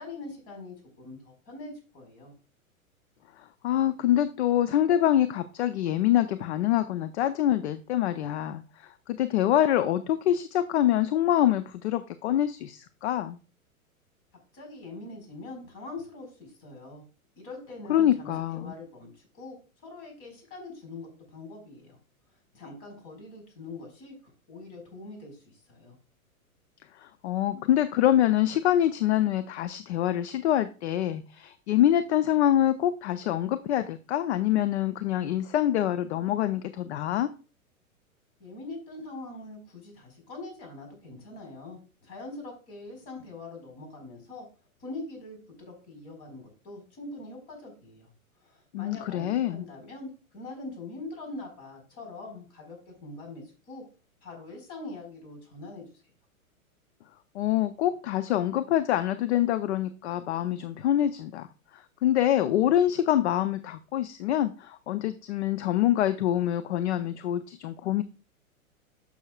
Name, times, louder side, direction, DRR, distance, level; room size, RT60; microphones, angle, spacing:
voice 1, 0.0-2.3 14.5-17.0 17.4-19.6 19.8-22.0 22.5-26.0 38.4-44.5 44.8-48.1 48.4-53.8 54.2-55.9, left 2 dB, 35° left, 3 dB, 4.5 m, -43 dB
voice 2, 3.4-13.4 17.9-18.7 27.0-37.3 48.7-49.6 57.3-61.5 61.7-68.0, left 12 dB, 50° left, 12 dB, 0.6 m, -25 dB
11.5 x 6.4 x 2.3 m, 0.35 s
figure-of-eight pair, 110°, 43 cm